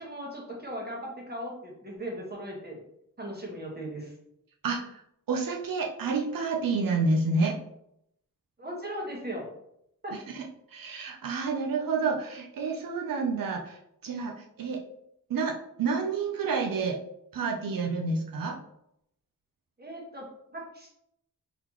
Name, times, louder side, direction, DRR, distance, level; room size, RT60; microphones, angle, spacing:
voice 1, 0.0-2.8 3.2-4.1 8.6-9.4 10.0-10.1 19.8-20.9, right 1 dB, 30° right, -2 dB, 1.4 m, -38 dB
voice 2, 5.3-7.6 10.1-10.4 10.7-14.8 15.3-17.0 17.3-18.6, right 4 dB, 80° right, 1 dB, 0.6 m, -29 dB
3.9 x 3.5 x 3.0 m, 0.76 s
wide cardioid pair, 100°, 33 cm